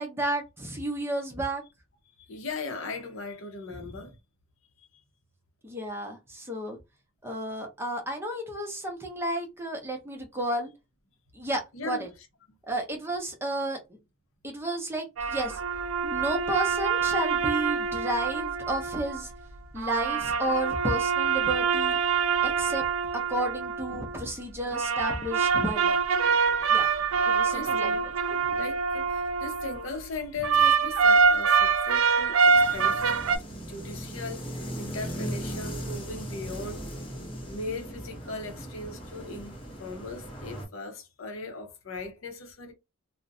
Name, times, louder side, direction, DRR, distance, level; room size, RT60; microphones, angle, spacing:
voice 1, 0.0-1.6 3.8-4.0 5.6-6.8 7.2-10.7 11.3-12.1 12.6-13.8 14.4-15.6 16.0-19.3 19.7-22.0 22.4-22.8 23.3-26.0 26.7-26.9 27.2-27.9, right 1 dB, 10° right, 0.6 m, -32 dB
voice 2, 2.2-4.2 4.8-4.9 11.7-12.1 27.5-33.2 33.7-36.8 37.5-42.7, left 3 dB, 80° left, 0.7 m, -38 dB
sound 1, 15.2-19.2 19.8-24.2 24.7-29.8 30.4-33.4, right 5 dB, 85° right, 0.4 m, -25 dB
sound 2, 32.5-40.7, equal, 25° left, 0.8 m, -38 dB
2.5 x 2.0 x 2.5 m
head